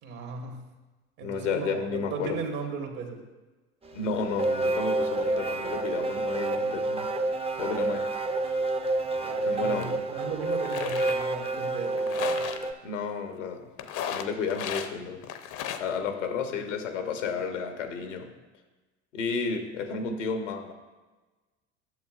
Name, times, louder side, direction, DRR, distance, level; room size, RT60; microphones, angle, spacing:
voice 1, 0.0-0.7 1.2-3.2 9.2-12.4, right 5 dB, 60° right, 2 dB, 1.6 m, -37 dB
voice 2, 1.2-2.4 3.9-7.1 7.6-8.1 9.5-10.0 12.8-13.6 14.1-15.2 15.7-18.3 19.1-20.7, left 5 dB, 85° left, 6 dB, 1.0 m, -32 dB
sound 1, 3.8-12.7, right 2 dB, 15° right, 0.6 m, -29 dB
sound 2, 9.8-9.9 10.5-11.2 12.0-12.6 13.8-14.9 15.2-15.9, left 9 dB, 55° left, 0.7 m, -35 dB
11.5 x 7.1 x 2.4 m, 1.2 s
hypercardioid pair, 75°, 36 cm